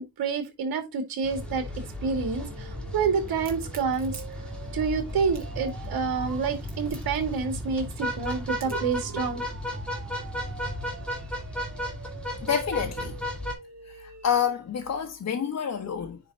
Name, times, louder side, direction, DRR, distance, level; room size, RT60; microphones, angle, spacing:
voice 1, 0.0-1.6 2.0-4.2 4.7-9.4, right 5 dB, 65° right, 2.4 m, -28 dB
sound 1, 1.2-13.5, left 1 dB, 5° left, 3.0 m, -35 dB
sound 2, 1.3-6.5 8.7-14.6, right 6 dB, 45° right, 2.9 m, -47 dB
Crack, 3.3-9.0, right 3 dB, 25° right, 3.2 m, -49 dB
voice 2, 12.4-13.2 13.8-16.2, left 7 dB, 45° left, 1.3 m, -28 dB
10.0 x 4.0 x 4.2 m
cardioid pair, 140°, 38 cm